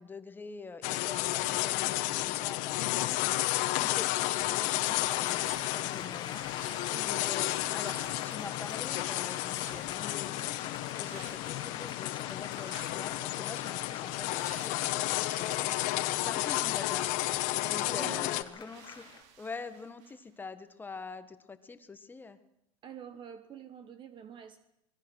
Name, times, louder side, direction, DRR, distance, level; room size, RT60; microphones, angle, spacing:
voice 1, 0.0-3.3 3.7-6.4 6.8-10.5 10.9-15.7 16.2-17.1 17.6-19.1 19.4-22.4, left 4 dB, 10° left, 11 dB, 1.4 m, -45 dB
sound 1, 0.8-18.4, left 18 dB, 50° left, 1.2 m, -32 dB
sound 2, 4.0-19.2, left 8 dB, 25° left, 2.0 m, -45 dB
sound 3, 4.8-5.9 6.2-7.0 7.7-8.5 9.4-10.2 11.0-11.6 12.4-13.1 14.2-20.3, right 7 dB, 55° right, 4.7 m, -55 dB
voice 2, 6.9-7.3 17.8-18.3 22.8-24.6, right 8 dB, 30° right, 10 dB, 1.2 m, -47 dB
26.0 x 20.5 x 6.4 m, 0.83 s
supercardioid pair, 135°, 17 cm